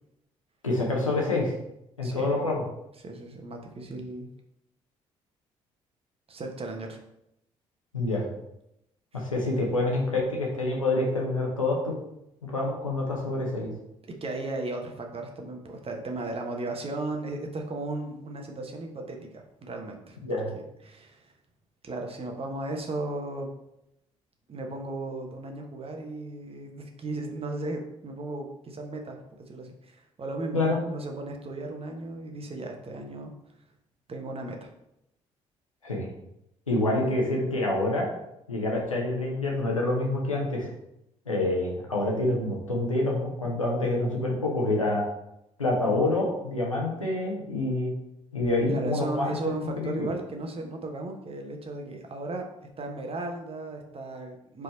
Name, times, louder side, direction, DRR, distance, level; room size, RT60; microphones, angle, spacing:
voice 1, 0.6-1.5 2.0-2.6 7.9-8.3 9.1-11.9 12.4-13.7 20.2-20.5 30.5-30.8 35.8-36.1 36.7-38.1 38.5-40.7 41.3-45.0 45.6-47.9 48.3-50.1, left 2 dB, 85° left, -1 dB, 0.9 m, -27 dB
voice 2, 3.0-4.3 6.3-7.0 9.1-9.2 14.2-19.3 19.6-20.2 20.8-21.3 21.8-23.5 24.5-29.2 29.5-33.3 34.1-34.7 48.7-52.4 52.8-54.6, right 2 dB, 35° right, 2 dB, 1.2 m, -35 dB
4.8 x 4.6 x 4.2 m, 0.83 s
figure-of-eight pair, 40°, 17 cm